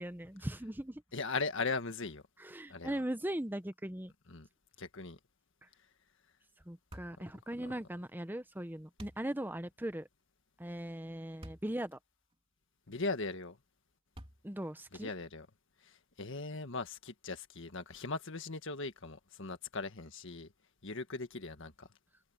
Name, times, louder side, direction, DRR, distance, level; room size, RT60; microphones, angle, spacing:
voice 1, 0.0-1.0 2.4-4.1 6.7-10.1 10.6-12.0 14.4-15.1, right 1 dB, 10° right, 0.9 m, -39 dB
voice 2, 1.1-2.2 2.7-3.0 4.3-4.5 4.8-5.2 12.9-13.6 15.0-15.5 15.8-20.5 20.8-21.9, left 3 dB, 60° left, 1.7 m, -39 dB
sound 1, 6.9-7.2 9.0-9.3 11.4-11.7 12.3-12.4 14.1-14.6, equal, 25° right, 3.2 m, -49 dB
head